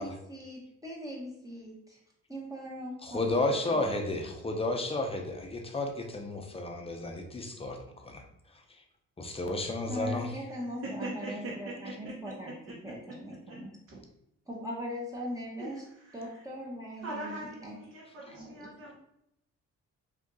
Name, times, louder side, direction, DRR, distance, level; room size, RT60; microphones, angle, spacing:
voice 1, 0.0-2.0 2.3-3.9 9.9-12.5 12.8-13.7 14.5-15.8 16.1-17.7 18.3-18.7, equal, 10° right, -3 dB, 0.8 m, -40 dB
voice 2, 3.0-8.2 9.2-10.3, left 2 dB, 20° left, 3 dB, 0.6 m, -32 dB
voice 3, 10.4-12.6 12.8-13.6 13.9-14.0 15.6-16.4 17.0-18.9, right 2 dB, 55° right, -6 dB, 1.0 m, -42 dB
2.8 x 2.5 x 3.6 m, 0.78 s
cardioid pair, 90°, 30 cm